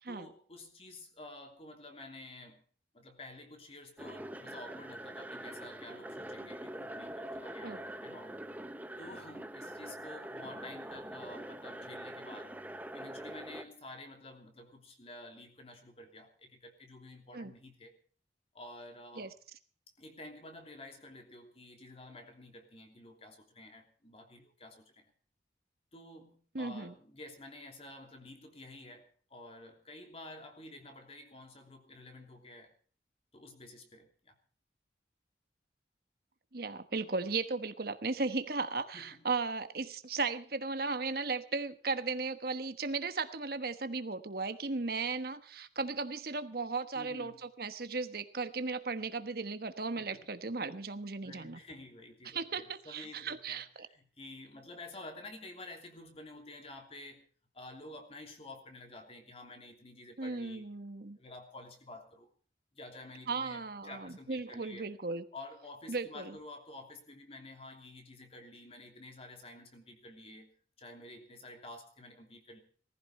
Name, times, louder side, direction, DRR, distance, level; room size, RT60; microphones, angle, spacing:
voice 1, 0.1-2.6 2.9-8.4 9.0-12.5 12.9-17.9 18.5-19.3 20.0-25.1 25.9-32.7 33.3-34.4 38.9-39.2 46.9-47.4 50.0-50.3 51.2-57.3 57.5-60.6 61.2-62.3 62.7-64.9 65.3-70.5 70.8-72.6, left 2 dB, 35° left, 4 dB, 3.0 m, -50 dB
sound 1, 4.0-13.6, right 1 dB, 10° right, 0.9 m, -44 dB
voice 2, 26.5-26.9 36.5-51.6 52.3-53.9 60.2-61.2 63.3-65.3 65.9-66.4, right 4 dB, 60° right, 10 dB, 1.2 m, -36 dB
19.0 x 15.0 x 4.3 m, 0.43 s
head